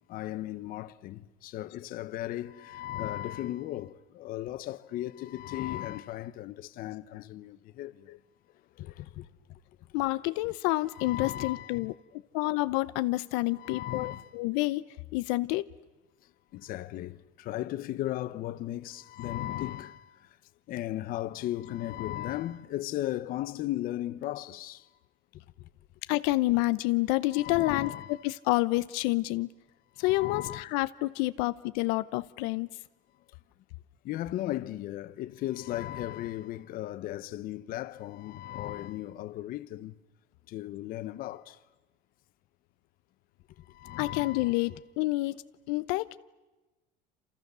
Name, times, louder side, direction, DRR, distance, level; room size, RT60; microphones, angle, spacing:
voice 1, 0.1-8.1 8.8-9.6 10.9-11.8 13.5-14.3 16.5-20.3 20.7-24.9 25.6-25.7 27.3-28.2 30.0-30.7 34.0-39.9 40.5-41.6 43.7-44.6, left 14 dB, 45° left, 0.8 m, -36 dB
voice 2, 9.9-11.9 12.3-14.8 15.1-15.7 26.1-27.9 28.2-29.5 30.0-32.7 44.0-45.4 45.7-46.2, left 20 dB, 80° left, 0.8 m, -28 dB
28.0 x 27.5 x 6.9 m
cardioid pair, 155°, 20 cm